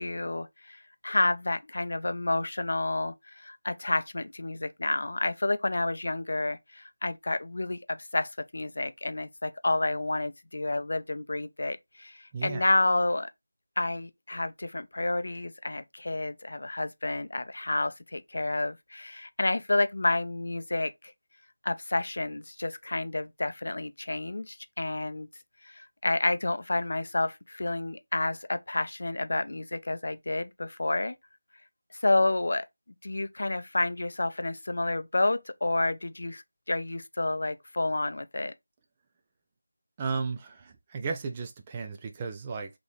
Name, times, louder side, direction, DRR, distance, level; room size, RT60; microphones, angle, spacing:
voice 1, 0.0-13.3 13.8-20.9 21.6-25.3 25.6-31.2 31.9-32.7 33.0-38.5, left 2 dB, 55° left, 0.5 m, -30 dB
voice 2, 12.3-12.7 40.0-42.7, right 4 dB, 15° right, 0.4 m, -34 dB
4.0 x 3.0 x 3.2 m
figure-of-eight pair, 170°, 0 cm